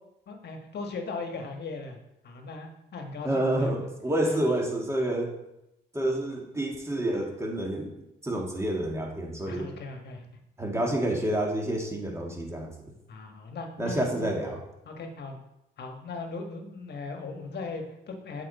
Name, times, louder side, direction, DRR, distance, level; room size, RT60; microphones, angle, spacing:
voice 1, 0.3-2.0 2.2-3.9 4.2-4.4 9.5-10.2 13.1-14.4 14.9-15.4 15.8-18.5, left 3 dB, 55° left, 4 dB, 1.4 m, -38 dB
voice 2, 3.2-5.3 5.9-7.9 8.2-9.7 10.6-12.7 13.8-14.6, right 1 dB, 15° right, 0 dB, 1.9 m, -28 dB
7.8 x 4.9 x 4.2 m, 0.88 s
supercardioid pair, 70°, 21 cm